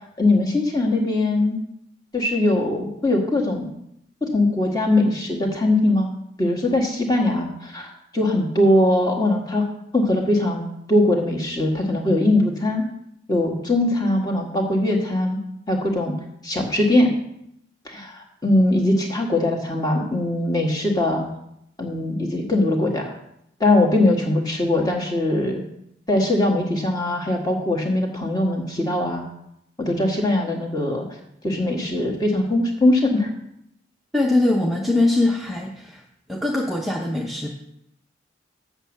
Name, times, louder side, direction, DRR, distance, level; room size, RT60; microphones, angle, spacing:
voice 1, 0.2-1.6 2.1-3.7 4.2-6.1 6.4-9.7 9.9-12.8 13.3-15.4 15.7-16.1 16.4-17.1 17.9-21.3 21.8-23.1 23.6-25.6 26.1-29.3 29.8-31.0 31.4-33.3, left 1 dB, 20° left, 1 dB, 1.6 m, -21 dB
voice 2, 34.1-36.0 36.3-37.5, left 2 dB, ahead, -2 dB, 0.7 m, -22 dB
8.0 x 7.1 x 6.5 m, 0.78 s
head